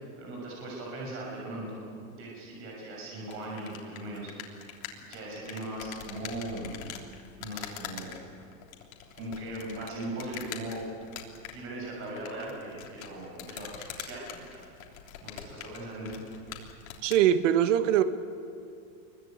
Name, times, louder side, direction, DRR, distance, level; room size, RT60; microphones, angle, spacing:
voice 1, 0.2-1.8 2.2-4.7 5.1-6.8 7.4-8.2 9.1-10.8 11.5-14.5 15.2-16.4, right 1 dB, 30° right, -2 dB, 6.5 m, -39 dB
sound 1, 3.2-17.3, left 9 dB, 75° left, 3.6 m, -44 dB
voice 2, 17.0-18.0, right 10 dB, 60° right, 10 dB, 1.7 m, -22 dB
26.5 x 23.0 x 9.0 m, 2.3 s
supercardioid pair, 175°, 41 cm